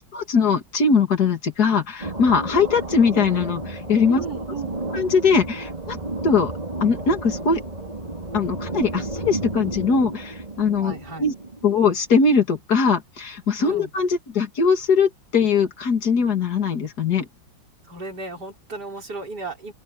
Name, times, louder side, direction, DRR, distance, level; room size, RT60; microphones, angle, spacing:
voice 1, 0.0-4.2 4.9-6.0 6.2-6.5 6.8-7.6 8.3-10.9 11.2-11.3 11.6-17.3, left 5 dB, 50° left, 2.9 m, -21 dB
sound 1, 2.0-11.8, right 2 dB, 20° right, 3.3 m, -32 dB
voice 2, 4.1-4.8 10.8-11.2 13.6-13.9 17.8-19.7, right 3 dB, 55° right, 6.4 m, -35 dB
open air
omnidirectional pair, 2.2 m